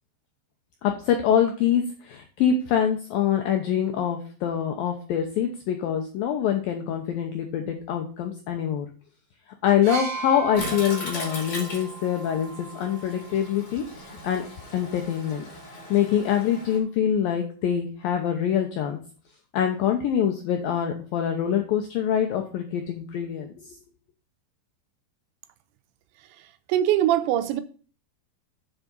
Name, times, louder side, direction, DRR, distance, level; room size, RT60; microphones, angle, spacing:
voice 1, 0.8-8.9 9.6-14.5 14.7-15.4 15.9-19.0 19.5-23.7, left 9 dB, 85° left, 2.0 m, -25 dB
sound 1, 9.8-13.6 14.7-14.8, right 4 dB, 60° right, 2.9 m, -37 dB
Toilet flush, 10.5-16.8, left 1 dB, 35° left, 3.0 m, -38 dB
voice 2, 26.4-27.6, right 12 dB, 80° right, 2.8 m, -23 dB
7.5 x 7.3 x 5.3 m
omnidirectional pair, 5.4 m